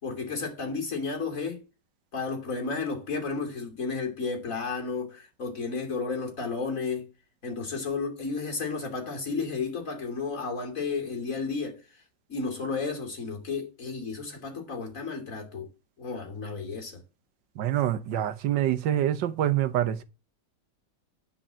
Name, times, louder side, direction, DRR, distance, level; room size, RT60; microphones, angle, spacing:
voice 1, 0.0-1.6 2.1-7.1 7.4-11.8 12.3-15.7 16.0-17.0, left 4 dB, 45° left, 3.2 m, -32 dB
voice 2, 17.6-20.0, right 11 dB, 85° right, 1.6 m, -26 dB
10.0 x 5.6 x 7.3 m
omnidirectional pair, 1.9 m